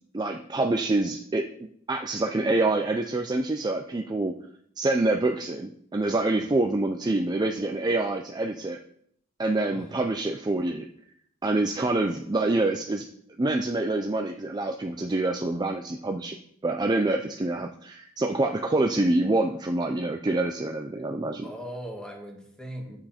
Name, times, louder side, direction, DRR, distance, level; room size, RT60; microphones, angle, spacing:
voice 1, 0.1-1.5 1.9-4.3 4.8-8.8 9.4-10.9 11.4-13.1 13.4-16.3 16.6-21.4, right 2 dB, 20° right, 4 dB, 0.5 m, -26 dB
voice 2, 21.4-23.0, equal, 5° left, 2 dB, 1.5 m, -39 dB
9.2 x 7.7 x 4.3 m, 0.66 s
head